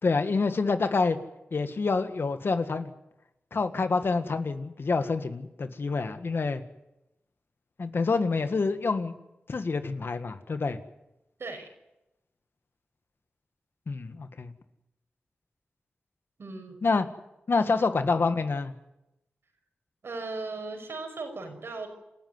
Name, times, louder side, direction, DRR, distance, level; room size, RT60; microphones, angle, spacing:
voice 1, 0.0-1.2 1.5-2.9 3.5-6.6 7.8-9.1 9.5-10.8 13.9-14.5 16.8-17.1 17.5-18.7, left 4 dB, 65° left, 9 dB, 1.7 m, -27 dB
voice 2, 16.4-16.8 20.0-21.9, right 3 dB, 75° right, 4 dB, 5.7 m, -37 dB
27.5 x 13.5 x 9.6 m, 0.93 s
cardioid pair, 45°, 4 cm